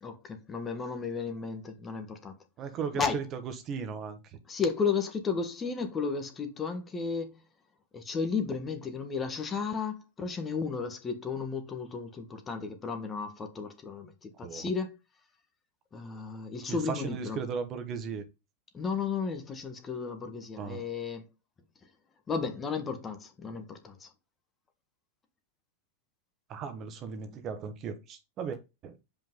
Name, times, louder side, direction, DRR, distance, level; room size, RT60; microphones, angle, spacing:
voice 1, 0.0-2.3 2.9-3.2 4.5-7.4 7.9-15.0 15.9-17.4 18.7-21.3 22.3-24.1, left 5 dB, 20° left, 1.5 m, -33 dB
voice 2, 2.6-3.4 3.6-4.4 14.4-14.7 16.7-18.2 20.6-20.8 26.5-29.0, right 6 dB, 35° right, 1.5 m, -36 dB
7.4 x 5.2 x 3.8 m
supercardioid pair, 135°, 0 cm